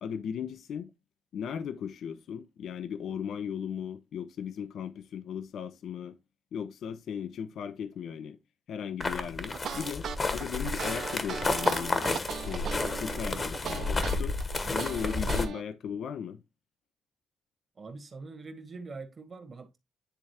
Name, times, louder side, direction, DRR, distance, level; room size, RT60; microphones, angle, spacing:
voice 1, 0.0-0.9 1.3-6.2 6.5-8.4 8.7-14.4 14.7-16.4, left 8 dB, 70° left, 0.7 m, -37 dB
sound 1, 9.0-15.5, left 3 dB, 30° left, 1.2 m, -31 dB
sound 2, 9.5-15.6, right 8 dB, 65° right, 0.5 m, -38 dB
voice 2, 17.8-19.8, right 3 dB, 40° right, 1.7 m, -43 dB
10.0 x 3.6 x 3.4 m
cardioid pair, 90°, 0 cm